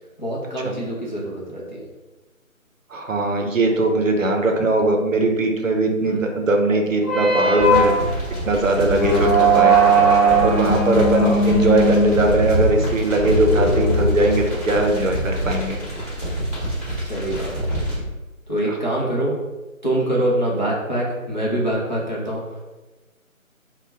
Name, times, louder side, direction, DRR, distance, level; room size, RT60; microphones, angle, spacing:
voice 1, 0.2-1.8 6.0-6.2 11.0-11.5 17.0-17.7 18.5-19.4 19.8-22.8, right 1 dB, 35° left, -6 dB, 0.5 m, -25 dB
voice 2, 2.9-8.0 8.5-9.7 10.4-15.8, right 2 dB, 65° right, 3 dB, 0.6 m, -20 dB
sound 1, 7.0-14.8, right 2 dB, 15° left, 0.9 m, -19 dB
sound 2, 7.6-18.0, right 1 dB, 10° right, 1.0 m, -26 dB
2.6 x 2.1 x 3.3 m, 1.1 s
figure-of-eight pair, 160°, 42 cm